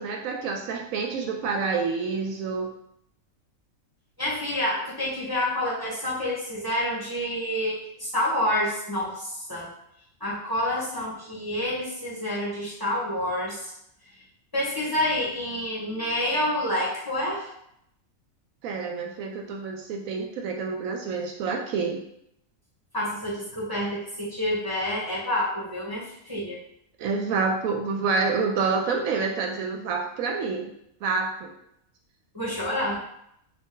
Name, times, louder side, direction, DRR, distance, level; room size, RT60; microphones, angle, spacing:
voice 1, 0.0-2.7 18.6-22.0 27.0-30.7 31.0-31.5, right 4 dB, 75° right, 2 dB, 1.0 m, -28 dB
voice 2, 4.2-9.7 10.2-13.7 14.5-17.5 22.9-26.6 32.3-33.0, left 1 dB, 15° left, -8 dB, 1.4 m, -28 dB
4.1 x 2.5 x 3.8 m, 0.75 s
omnidirectional pair, 1.4 m